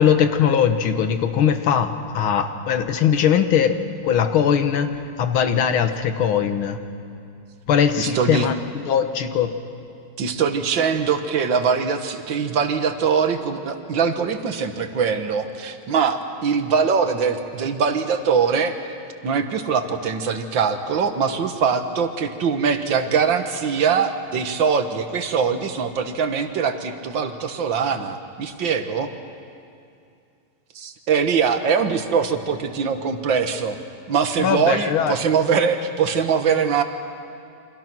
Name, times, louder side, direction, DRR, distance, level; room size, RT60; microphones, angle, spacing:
voice 1, 0.0-6.8 7.7-9.5 34.4-35.2, left 8 dB, 85° left, 8 dB, 2.1 m, -20 dB
voice 2, 8.0-8.5 10.2-18.7 19.2-29.1 30.8-33.8 34.1-36.8, right 6 dB, 65° right, 7 dB, 2.0 m, -22 dB
29.0 x 25.5 x 6.1 m, 2.5 s
omnidirectional pair, 2.2 m